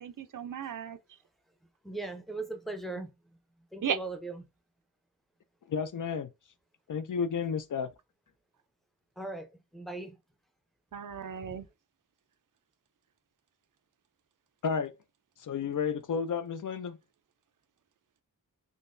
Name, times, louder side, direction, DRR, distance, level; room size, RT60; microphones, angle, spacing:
voice 1, 0.0-1.0 3.8-4.0 10.9-11.6, right 8 dB, 55° right, 0.5 m, -35 dB
voice 2, 1.8-3.1 3.7-4.5 9.2-10.2 11.4-11.6, right 2 dB, ahead, 0.6 m, -39 dB
voice 3, 5.7-6.3 6.9-7.9 14.6-14.9 15.4-17.0, left 6 dB, 55° left, 0.5 m, -32 dB
3.8 x 2.8 x 2.5 m
wide cardioid pair, 90°, 37 cm